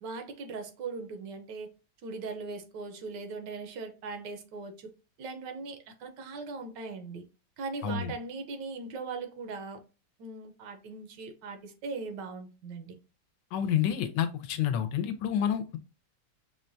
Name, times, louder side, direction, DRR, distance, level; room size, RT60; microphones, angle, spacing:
voice 1, 0.0-1.7 2.0-4.9 5.2-7.2 7.6-9.8 10.2-13.0, right 4 dB, 85° right, 1.4 m, -39 dB
voice 2, 13.5-15.8, left 9 dB, 85° left, 1.3 m, -29 dB
5.8 x 2.2 x 2.5 m
omnidirectional pair, 1.9 m